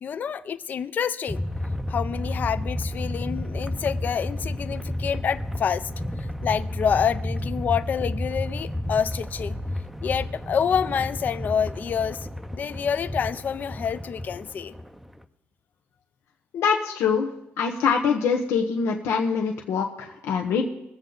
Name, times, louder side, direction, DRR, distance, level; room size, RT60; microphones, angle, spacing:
voice 1, 0.0-1.4 1.9-5.9 6.2-9.6 10.0-14.7, left 7 dB, 40° left, 0.5 m, -27 dB
sound 1, 1.3-15.2, left 1 dB, ahead, 0.6 m, -31 dB
voice 2, 16.5-20.6, left 6 dB, 85° left, 1.0 m, -24 dB
22.0 x 8.1 x 3.9 m
cardioid pair, 145°, 4 cm